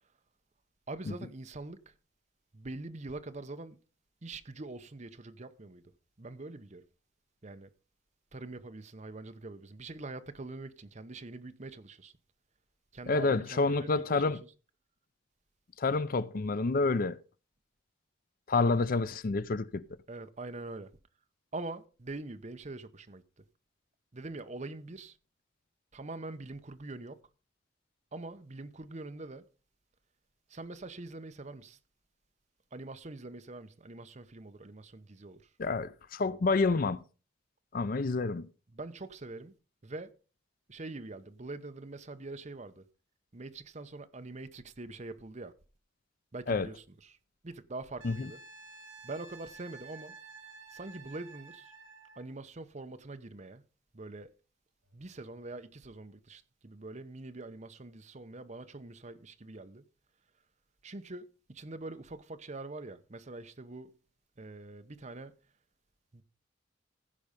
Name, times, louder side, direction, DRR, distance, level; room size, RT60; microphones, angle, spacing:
voice 1, 0.9-1.9 2.5-3.8 4.2-5.8 6.2-6.8 7.4-7.7 8.3-12.1 12.9-14.4 20.1-20.9 21.5-23.2 24.1-25.2 25.9-27.2 28.1-29.5 30.5-31.8 32.7-35.5 38.7-39.5 39.8-40.1 40.7-42.8 43.3-45.5 46.3-47.2 47.4-48.4 49.0-50.2 50.7-51.7 52.2-53.6 53.9-54.3 54.9-59.8 60.8-63.9 64.4-65.3 66.1-66.2, right 2 dB, 35° right, 0.8 m, -44 dB
voice 2, 13.1-14.4 15.8-17.2 18.5-19.8 35.6-37.0 37.7-38.5 46.5-46.7 48.0-48.3, left 3 dB, 45° left, 0.5 m, -28 dB
Wind instrument woodwind instrument, 48.0-52.2 54.9-55.1, right 4 dB, 75° right, 3.2 m, -51 dB
15.0 x 5.5 x 5.2 m
head